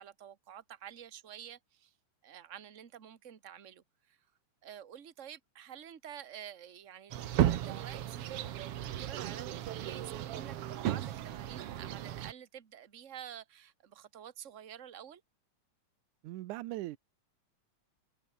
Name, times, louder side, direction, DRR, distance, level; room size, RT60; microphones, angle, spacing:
voice 1, 0.0-1.9 2.2-4.3 4.6-15.2, right 9 dB, 40° right, 1.1 m, -49 dB
sound 1, 7.1-12.3, right 12 dB, 60° right, 1.7 m, -34 dB
voice 2, 16.2-17.0, right 17 dB, 80° right, 2.3 m, -39 dB
omnidirectional pair, 3.6 m